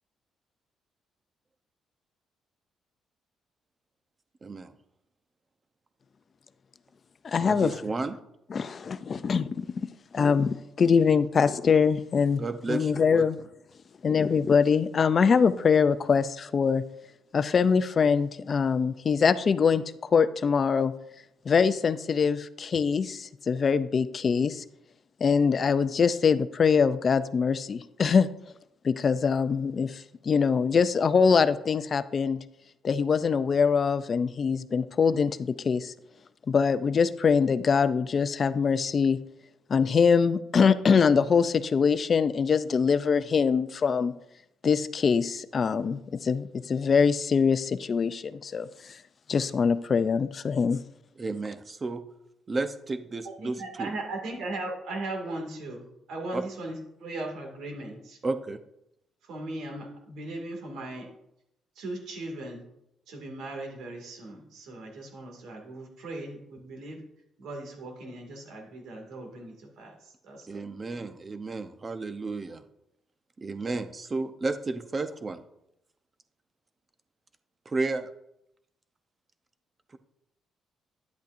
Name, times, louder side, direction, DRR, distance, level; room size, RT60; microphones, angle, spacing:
voice 1, 4.4-4.7 7.4-8.2 12.4-13.3 51.2-52.1 52.5-53.9 56.3-56.4 58.2-58.6 70.5-72.6 73.4-75.4 77.7-78.1, right 3 dB, 35° right, 9 dB, 0.7 m, -32 dB
voice 2, 7.2-7.7 8.5-12.4 12.7-13.4 14.0-16.8 17.3-20.9 21.5-24.6 25.2-28.3 28.8-32.4 32.8-35.9 36.5-39.2 39.7-44.1 44.6-49.0 49.3-50.8, left 6 dB, 45° left, 14 dB, 0.5 m, -23 dB
voice 3, 53.2-58.2 59.2-61.1 61.8-62.6 63.1-67.0 67.4-70.6 70.9-71.1, right 2 dB, 80° right, 1 dB, 2.2 m, -38 dB
10.5 x 8.3 x 2.6 m, 0.82 s
cardioid pair, 90°, 0 cm